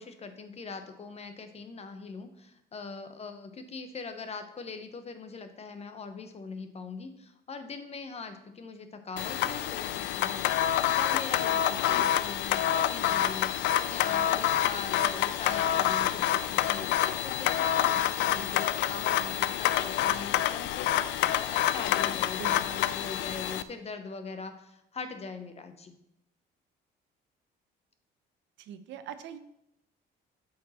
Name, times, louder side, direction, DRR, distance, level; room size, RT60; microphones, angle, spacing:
voice 1, 0.0-26.0, left 4 dB, 35° left, 8 dB, 0.9 m, -42 dB
sound 1, 9.2-23.6, left 11 dB, 75° left, 0.4 m, -27 dB
voice 2, 22.4-22.9 28.6-29.4, right 8 dB, 75° right, 11 dB, 0.7 m, -43 dB
8.2 x 5.2 x 4.2 m, 0.80 s
cardioid pair, 105°, 19 cm